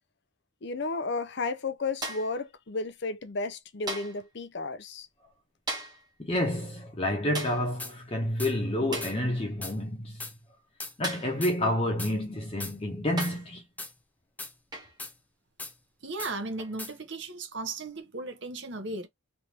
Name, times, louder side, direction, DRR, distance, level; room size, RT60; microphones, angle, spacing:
voice 1, 0.6-5.1, left 3 dB, 55° left, 0.6 m, -33 dB
sound 1, 2.0-2.4 3.9-4.3 5.7-6.1 7.3-7.7 8.9-9.2 11.0-11.4 12.4-12.5 13.2-13.5 14.7-15.0 16.6-16.8, right 2 dB, 20° right, 1.1 m, -37 dB
voice 2, 6.2-10.2 11.0-13.6, left 1 dB, 25° left, 0.8 m, -29 dB
sound 2, 7.8-7.9 8.4-8.5 9.0-9.1 9.6-9.8 10.2-10.3 10.8-10.9 11.4-11.5 12.0-12.1 12.6-12.8 13.2-13.3 13.8-13.9 14.4-14.5 15.0-15.1 15.6-15.7 16.2-16.3 16.8-16.9, left 3 dB, 10° left, 0.4 m, -39 dB
voice 3, 16.0-19.1, right 3 dB, 55° right, 0.9 m, -36 dB
3.4 x 2.6 x 2.9 m
head